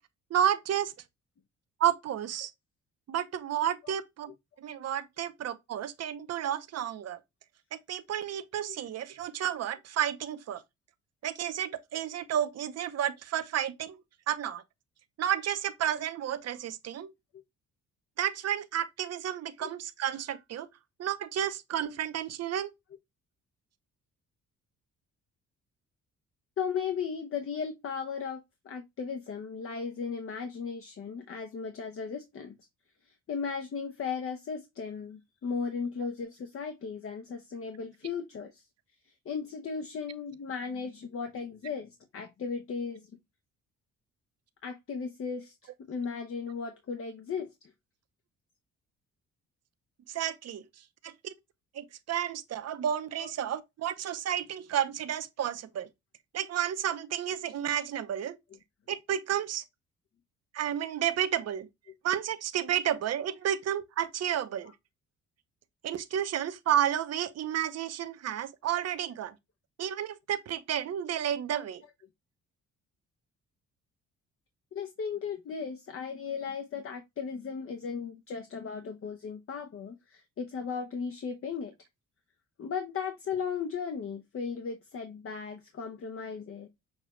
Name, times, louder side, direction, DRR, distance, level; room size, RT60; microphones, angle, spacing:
voice 1, 0.3-0.9 1.8-2.5 3.1-4.3 4.6-7.2 7.7-10.6 11.2-14.0 14.3-14.6 15.2-17.1 18.2-20.7 21.0-22.7 50.1-50.6 51.0-51.3 51.7-55.9 56.3-58.4 58.9-59.6 60.5-61.7 62.0-64.7 65.8-69.3 69.8-71.8, right 10 dB, 55° right, 0.7 m, -31 dB
voice 2, 26.6-32.6 33.1-38.6 39.2-43.1 44.6-45.5 45.9-47.5 53.2-53.3 64.7-64.8 74.7-81.7 82.6-86.7, left 6 dB, 45° left, 0.8 m, -36 dB
6.5 x 2.3 x 3.1 m
cardioid pair, 90°, 30 cm